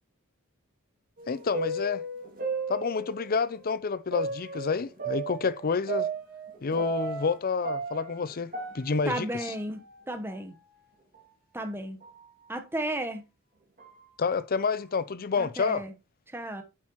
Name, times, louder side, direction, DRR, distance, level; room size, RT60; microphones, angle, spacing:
sound 1, 1.2-3.4 4.1-7.4 7.6-10.0 10.3-10.4 11.1-11.2 12.0-12.2 12.9-13.0 13.8-14.1, right 4 dB, 40° right, 2.4 m, -35 dB
voice 1, 1.3-2.0 2.7-6.1 6.6-9.5 14.2-15.8, left 5 dB, 45° left, 0.5 m, -29 dB
voice 2, 9.0-10.5 11.5-12.0 12.5-13.2 15.4-15.9 16.3-16.6, right 1 dB, 10° right, 1.1 m, -33 dB
8.6 x 7.5 x 3.0 m
head